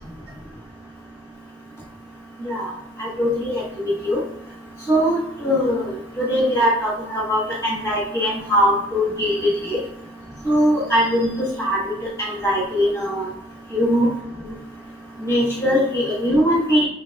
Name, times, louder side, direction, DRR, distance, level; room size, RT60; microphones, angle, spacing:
voice 1, 3.0-4.2 4.9-5.8 6.2-9.8 10.4-11.8 12.2-13.2 13.7-14.1 15.2-16.8, equal, 15° left, -5 dB, 1.3 m, -21 dB
5.8 x 4.0 x 2.3 m, 0.80 s
head